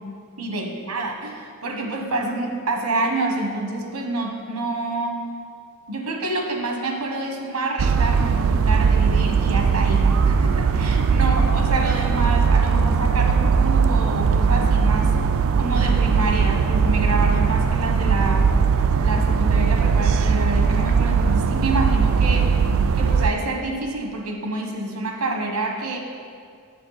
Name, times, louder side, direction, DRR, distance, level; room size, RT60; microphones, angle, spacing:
voice 1, 0.4-5.2 5.9-15.1 15.5-18.5 19.0-22.5 22.9-26.0, right 2 dB, 85° right, 2 dB, 1.3 m, -27 dB
sound 1, 7.8-23.3, right 5 dB, 65° right, 0.4 m, -19 dB
9.2 x 7.9 x 4.1 m, 2.2 s
head